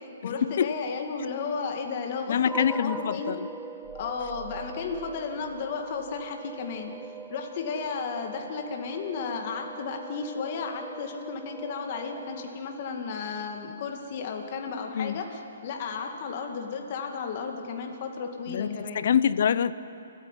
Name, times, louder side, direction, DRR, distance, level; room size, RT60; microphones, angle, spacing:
voice 1, 0.2-3.3 4.0-6.9 7.3-15.2 15.6-17.9 18.2-19.0, left 5 dB, 45° left, 3 dB, 2.2 m, -33 dB
voice 2, 2.3-3.5 14.9-15.2 18.5-19.7, left 8 dB, 60° left, 16 dB, 0.7 m, -25 dB
sound 1, 2.4-13.0, right 4 dB, 5° right, 0.5 m, -42 dB
sound 2, 3.8-6.4 6.7-6.9, right 6 dB, 65° right, 2.2 m, -49 dB
29.5 x 10.0 x 9.9 m, 2.7 s
hypercardioid pair, 150°, 0 cm